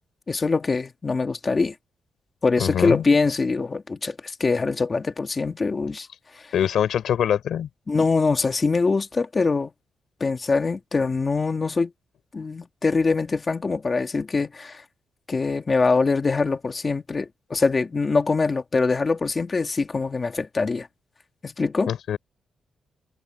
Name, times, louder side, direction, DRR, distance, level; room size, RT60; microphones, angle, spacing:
voice 1, 0.3-1.7 2.4-6.1 7.9-9.7 10.2-11.9 12.3-14.8 15.3-20.9 21.4-21.9, left 4 dB, 25° left, 2.3 m, -23 dB
voice 2, 2.6-3.0 6.5-7.7 21.9-22.2, left 9 dB, 70° left, 3.6 m, -23 dB
wide cardioid pair, 165°, 0 cm